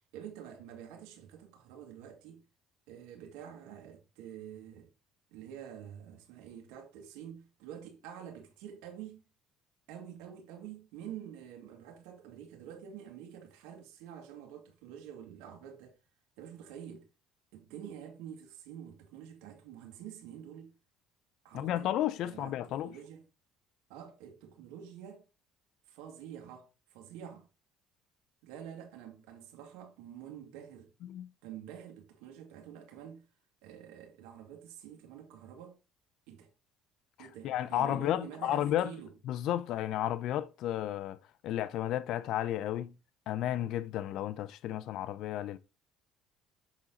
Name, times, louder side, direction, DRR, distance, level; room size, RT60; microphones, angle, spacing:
voice 1, 0.0-2.4 2.9-4.9 5.3-9.2 9.9-16.0 16.4-17.1 17.5-20.7 21.4-22.0 22.2-22.6 22.8-23.2 23.9-25.3 25.9-27.5 28.4-30.9 31.4-33.2 33.6-35.8 36.3-36.5 37.2-39.1, right 9 dB, 85° right, 1.9 m, -48 dB
voice 2, 21.5-22.9 31.1-31.3 37.2-38.9 39.3-41.2 41.4-42.9 43.3-45.6, left 12 dB, 65° left, 0.5 m, -32 dB
7.3 x 4.2 x 3.9 m
cardioid pair, 105°, 0 cm